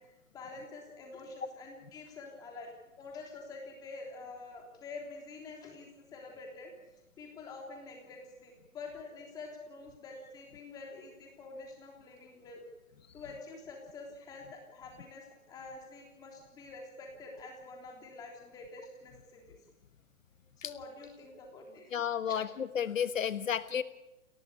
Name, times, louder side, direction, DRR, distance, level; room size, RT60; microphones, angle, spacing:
voice 1, 0.0-2.7 3.0-6.7 7.2-12.6 13.1-19.5 20.6-22.0 22.3-22.4, left 3 dB, 10° left, 1 dB, 3.4 m, -47 dB
voice 2, 21.9-23.8, left 8 dB, 70° left, 12 dB, 1.3 m, -32 dB
30.0 x 13.5 x 9.6 m, 1.0 s
hypercardioid pair, 175°, 41 cm